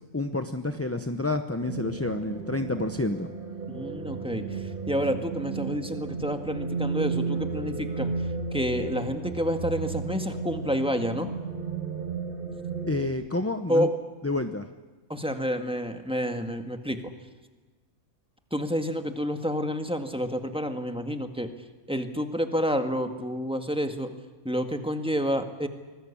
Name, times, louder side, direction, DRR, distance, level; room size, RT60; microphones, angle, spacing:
voice 1, 0.1-3.3 12.9-13.9 14.2-14.7, left 2 dB, 15° left, 7 dB, 0.6 m, -29 dB
sound 1, 1.6-13.1, right 4 dB, 40° right, 2.2 m, -33 dB
voice 2, 3.7-8.1 8.5-11.3 13.7-13.9 15.1-17.1 18.5-21.5 21.9-24.1 24.4-25.7, equal, 5° right, 6 dB, 1.8 m, -29 dB
25.0 x 20.0 x 8.6 m, 1.3 s
omnidirectional pair, 1.5 m